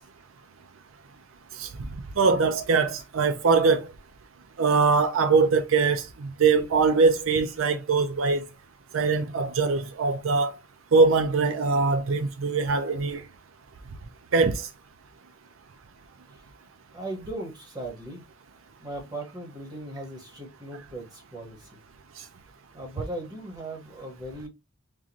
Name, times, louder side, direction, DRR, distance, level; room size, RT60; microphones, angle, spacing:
voice 1, 2.2-3.8 4.6-8.4 8.9-10.5 10.9-13.2 14.3-14.6, right 4 dB, 90° right, 0.5 m, -22 dB
voice 2, 16.9-18.2 18.8-21.7 22.7-24.5, right 1 dB, 20° right, 1.3 m, -38 dB
3.8 x 2.5 x 2.9 m
head